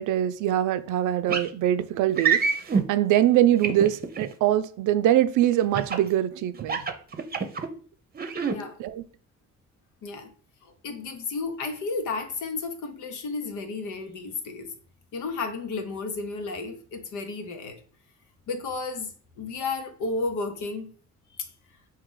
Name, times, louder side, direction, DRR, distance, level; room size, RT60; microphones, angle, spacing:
voice 1, 0.0-2.4 2.9-6.8 8.8-9.0, right 12 dB, 85° right, 0.5 m, -23 dB
sound 1, 1.3-1.5 2.1-2.8 3.6-4.2 5.7-6.1 6.6-7.7 8.1-8.6, right 6 dB, 30° right, 0.7 m, -25 dB
voice 2, 10.6-14.7 15.1-17.8 18.5-20.9, left 3 dB, 75° left, 1.0 m, -33 dB
4.7 x 2.9 x 3.8 m
cardioid pair, 90°, 30 cm